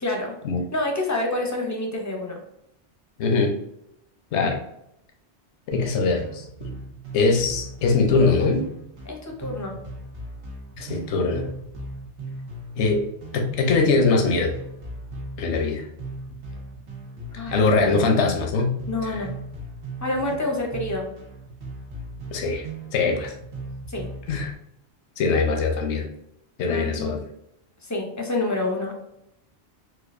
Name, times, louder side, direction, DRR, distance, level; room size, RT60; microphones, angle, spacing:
voice 1, 0.0-0.4 0.7-2.4 9.1-9.7 17.3-17.6 18.9-19.3 20.0-21.1 23.9-24.1 26.7-27.2 27.8-28.9, left 2 dB, 25° left, 1 dB, 0.4 m, -27 dB
voice 2, 3.2-3.5 4.3-4.6 5.7-6.5 7.1-8.6 10.8-11.5 12.8-13.0 13.3-14.5 15.4-15.8 17.5-18.7 19.0-19.2 22.3-22.6 22.9-23.3 24.3-24.5 25.2-26.1 26.6-27.2, left 4 dB, 85° left, 3 dB, 0.9 m, -22 dB
sound 1, 5.7-24.5, right 2 dB, 80° right, 1.3 m, -38 dB
4.3 x 2.4 x 2.5 m, 0.78 s
omnidirectional pair, 1.2 m